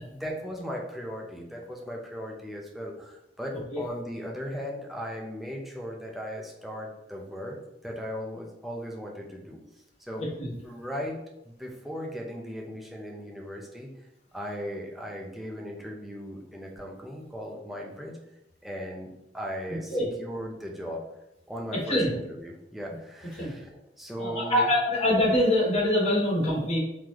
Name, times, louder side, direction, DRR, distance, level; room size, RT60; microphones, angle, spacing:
voice 1, 0.1-9.6 10.0-10.3 10.6-13.9 14.3-18.2 18.6-21.0 21.5-24.8, equal, ahead, -1 dB, 0.6 m, -37 dB
voice 2, 24.2-26.8, left 1 dB, 40° left, -4 dB, 1.1 m, -24 dB
3.8 x 3.1 x 3.0 m, 0.91 s
head